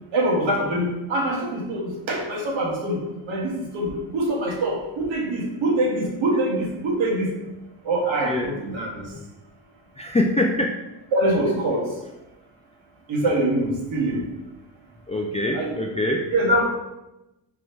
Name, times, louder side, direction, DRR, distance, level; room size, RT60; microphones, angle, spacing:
voice 1, 0.1-3.0 3.3-7.3 7.9-9.0 11.1-11.8 13.1-14.2 15.5-15.7 16.3-16.6, right 1 dB, 65° right, -1 dB, 2.0 m, -24 dB
voice 2, 8.3-8.6 10.0-10.7 15.1-16.2, left 1 dB, 15° left, 0 dB, 0.3 m, -24 dB
5.1 x 4.7 x 4.5 m, 0.95 s
cardioid pair, 135°, 49 cm